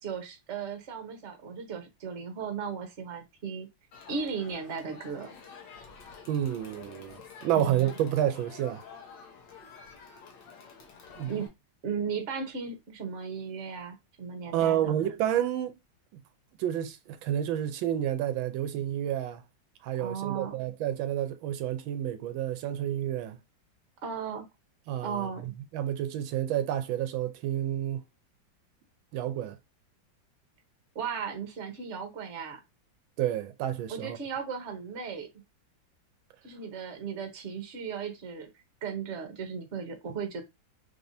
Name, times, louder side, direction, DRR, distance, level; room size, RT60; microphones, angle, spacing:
voice 1, 0.0-3.7 4.1-5.3 7.5-7.9 11.3-11.5 11.8-15.0 20.0-20.6 24.0-24.5 25.0-25.4 30.9-32.6 33.9-35.3 36.4-38.5 38.8-40.4, right 6 dB, 45° right, 1.1 m, -36 dB
Crowd, 3.9-11.5, left 5 dB, 70° left, 1.6 m, -49 dB
voice 2, 6.3-8.8 11.2-11.3 14.5-15.7 16.1-16.2 16.6-19.4 19.8-23.4 24.9-28.0 29.1-29.6 33.2-34.2, right 11 dB, 85° right, 1.4 m, -30 dB
4.2 x 3.4 x 2.6 m
omnidirectional pair, 2.1 m